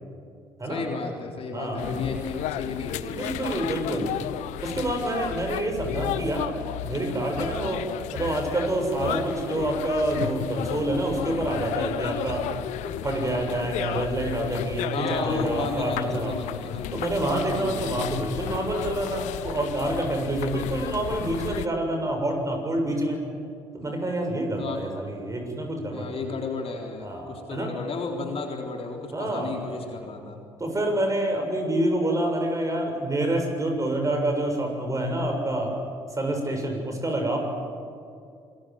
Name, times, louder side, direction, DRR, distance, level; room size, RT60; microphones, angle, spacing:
voice 1, 0.7-3.2 3.9-4.1 14.9-16.9 17.6-18.1 24.6-24.8 25.9-30.4, left 4 dB, 45° left, 2 dB, 3.9 m, -33 dB
voice 2, 1.5-1.9 3.0-4.1 4.6-6.6 6.8-7.8 8.1-12.4 12.8-16.3 16.9-23.2 23.7-26.1 27.0-27.7 29.1-29.6 30.6-35.7 36.2-37.4, right 1 dB, 25° right, 3 dB, 7.4 m, -27 dB
sound 1, 1.8-21.7, left 14 dB, 65° left, 0.9 m, -33 dB
27.0 x 21.0 x 7.9 m, 2.4 s
hypercardioid pair, 50°, 13 cm